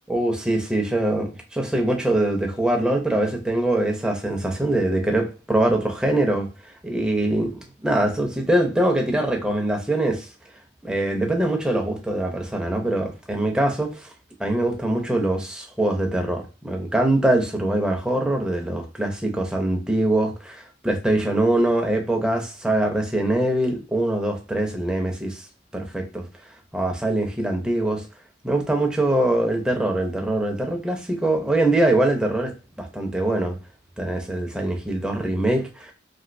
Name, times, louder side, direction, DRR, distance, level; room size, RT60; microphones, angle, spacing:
voice 1, 0.1-6.5 6.8-7.5 7.8-10.3 10.8-14.1 14.4-25.5 25.7-26.3 26.7-28.0 28.4-32.5 32.8-33.6 34.0-35.9, right 1 dB, 5° right, 0.5 m, -23 dB
3.0 x 2.7 x 2.5 m
head